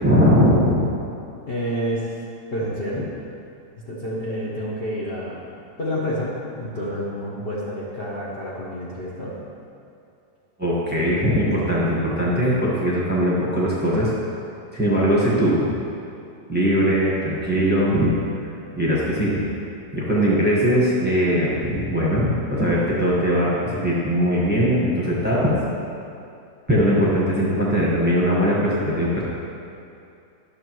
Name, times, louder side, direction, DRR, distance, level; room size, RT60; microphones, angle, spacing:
voice 1, 0.0-0.9 10.6-14.1 14.7-15.7 16.5-18.1 18.7-19.3 19.9-25.6 26.7-29.2, equal, 5° right, -6 dB, 1.2 m, -20 dB
voice 2, 1.5-2.1 2.5-3.0 3.9-5.4 5.8-6.3 6.6-9.3, equal, 40° left, -7 dB, 1.1 m, -28 dB
11.5 x 6.5 x 3.0 m, 2.6 s
omnidirectional pair, 1.8 m